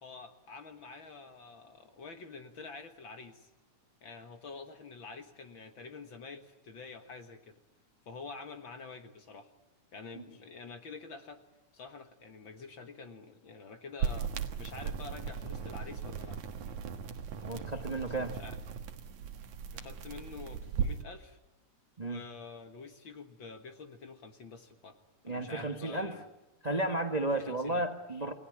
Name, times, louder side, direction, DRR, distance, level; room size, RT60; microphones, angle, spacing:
voice 1, 0.0-3.5 4.0-7.6 8.1-9.5 9.9-11.4 11.7-16.4 17.5-17.9 18.2-18.6 19.7-21.4 22.0-25.0 25.3-26.3 27.3-27.9, left 4 dB, 50° left, 7 dB, 2.0 m, -47 dB
sound 1, 14.0-21.0, right 7 dB, 75° right, 2.8 m, -37 dB
voice 2, 17.4-18.3 22.0-22.2 25.2-26.2 26.6-28.3, right 2 dB, 25° right, 5 dB, 0.9 m, -33 dB
29.0 x 19.5 x 10.0 m, 0.98 s
omnidirectional pair, 3.4 m